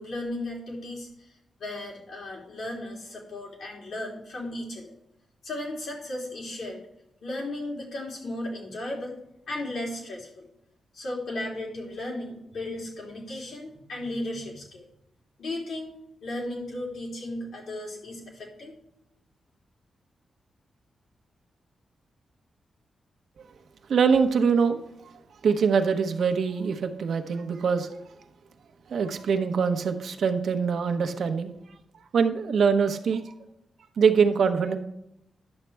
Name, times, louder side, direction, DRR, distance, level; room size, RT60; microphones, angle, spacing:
voice 1, 0.0-1.3 1.6-5.0 5.4-6.8 7.2-9.2 9.5-10.5 10.9-14.9 15.4-18.8, left 1 dB, 75° left, -3 dB, 3.4 m, -35 dB
voice 2, 23.9-24.8 25.4-27.9 28.9-31.5 32.1-33.2 34.0-34.8, right 6 dB, 65° right, 6 dB, 0.9 m, -23 dB
10.5 x 7.3 x 3.4 m, 0.81 s
wide cardioid pair, 160°, 0 cm